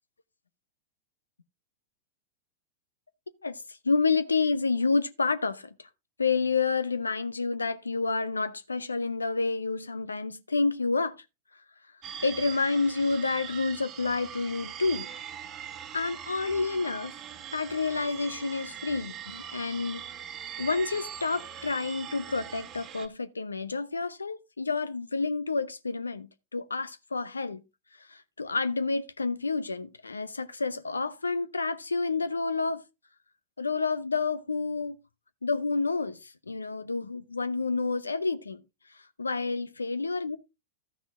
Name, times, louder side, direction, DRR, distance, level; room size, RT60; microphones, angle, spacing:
voice 1, 3.4-5.7 6.2-11.1 12.2-15.1 15.9-17.1 17.5-20.0 20.6-27.6 28.1-32.8 33.6-35.0 35.4-38.6 39.2-40.4, left 4 dB, 85° left, 0.7 m, -29 dB
sound 1, 12.0-23.1, right 9 dB, 35° right, 1.2 m, -42 dB
13.0 x 6.0 x 3.6 m
figure-of-eight pair, 100°, 0 cm